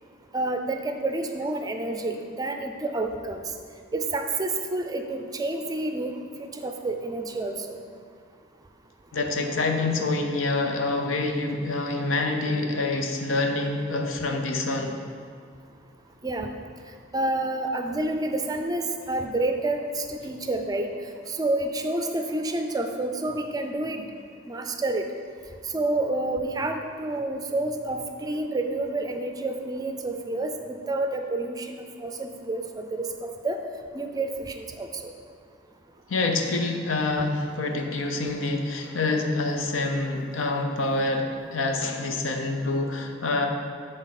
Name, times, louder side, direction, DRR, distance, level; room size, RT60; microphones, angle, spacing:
voice 1, 0.3-3.4 3.9-6.1 6.4-7.8 16.2-16.5 17.1-20.9 21.3-24.0 24.5-25.0 25.7-33.6 33.9-35.1, right 2 dB, 20° right, 5 dB, 0.4 m, -29 dB
voice 2, 9.1-15.0 36.1-43.5, left 2 dB, 90° left, 4 dB, 0.7 m, -26 dB
10.5 x 3.9 x 4.1 m, 2.1 s
head